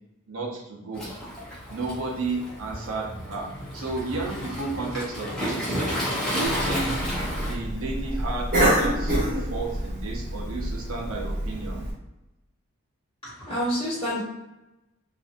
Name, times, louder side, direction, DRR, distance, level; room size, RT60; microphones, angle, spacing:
voice 1, 0.3-1.1 1.7-5.8 6.3-7.1 7.5-11.8, right 3 dB, 80° right, -2 dB, 0.7 m, -32 dB
Waves surf, 0.9-7.5, equal, 5° left, 0.6 m, -31 dB
Cough, 6.4-11.9, right 1 dB, 40° right, 1.0 m, -27 dB
voice 2, 13.2-14.2, equal, 25° left, -9 dB, 1.0 m, -28 dB
2.6 x 2.4 x 2.5 m, 0.94 s
head